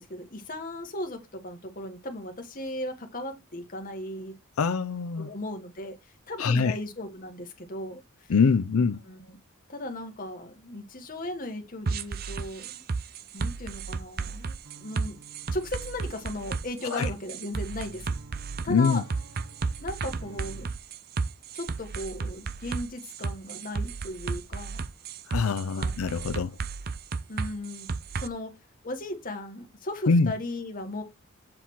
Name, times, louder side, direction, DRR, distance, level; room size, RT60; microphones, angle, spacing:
voice 1, 0.0-4.3 5.2-8.0 8.7-9.4 9.7-12.8 13.3-15.2 15.5-18.2 18.6-19.0 19.8-20.7 21.5-24.8 25.7-25.9 27.3-27.9 28.1-28.5 28.8-31.0, left 1 dB, 40° left, 1.6 m, -37 dB
voice 2, 4.6-5.3 6.4-6.8 8.3-9.0 16.9-17.1 18.7-19.0 25.3-26.6 30.1-30.3, left 5 dB, 80° left, 0.5 m, -24 dB
sound 1, 11.9-28.3, right 4 dB, 45° right, 0.5 m, -33 dB
sound 2, 14.6-20.8, right 3 dB, 85° right, 1.6 m, -50 dB
7.8 x 4.2 x 4.6 m
head